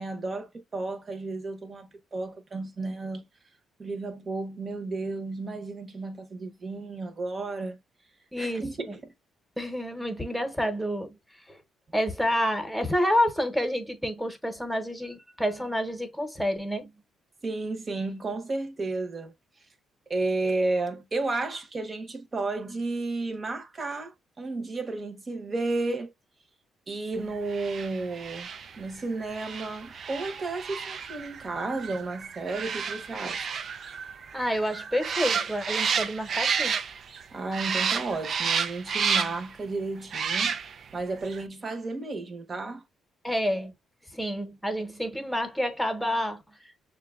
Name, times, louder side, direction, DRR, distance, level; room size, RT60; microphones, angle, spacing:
voice 1, 0.0-3.3 3.8-7.8 8.4-9.0 17.4-19.3 20.1-26.1 26.9-28.5 28.8-33.5 37.3-40.6 40.9-42.8, right 3 dB, 35° right, 0.9 m, -32 dB
voice 2, 8.3-8.9 9.6-11.2 11.5-11.6 11.9-16.9 34.3-36.8 43.2-43.7 44.1-46.7, equal, ahead, 1.0 m, -29 dB
sound 1, 27.5-37.2 37.5-39.5 40.1-40.9 41.3-41.4, right 6 dB, 55° right, 0.4 m, -31 dB
6.4 x 2.3 x 2.4 m
cardioid pair, 90°, 0 cm